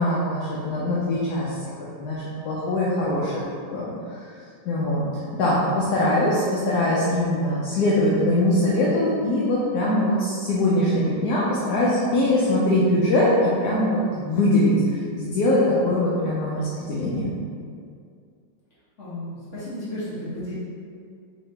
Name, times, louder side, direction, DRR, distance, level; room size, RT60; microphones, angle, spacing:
voice 1, 0.0-1.5 2.0-3.4 3.7-3.9 4.7-5.1 5.3-17.3, left 1 dB, 70° left, -7 dB, 1.1 m, -22 dB
voice 2, 19.0-20.6, left 1 dB, 40° left, -11 dB, 1.7 m, -33 dB
4.8 x 2.8 x 3.3 m, 2.3 s
omnidirectional pair, 2.0 m